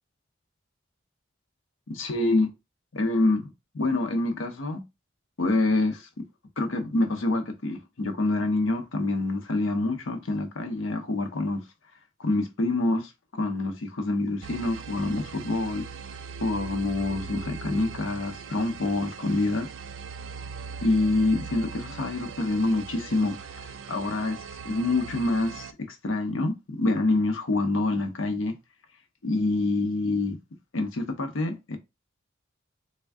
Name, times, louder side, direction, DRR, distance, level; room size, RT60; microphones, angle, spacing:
voice 1, 1.9-2.5 2.9-3.5 3.7-4.8 5.4-6.2 6.6-11.6 12.2-15.9 16.4-19.7 20.8-24.4 24.6-28.5 29.2-30.4 30.7-31.8, left 2 dB, 90° left, 0.7 m, -26 dB
sound 1, 14.4-25.7, right 5 dB, 80° right, 0.3 m, -40 dB
3.4 x 2.2 x 3.4 m
head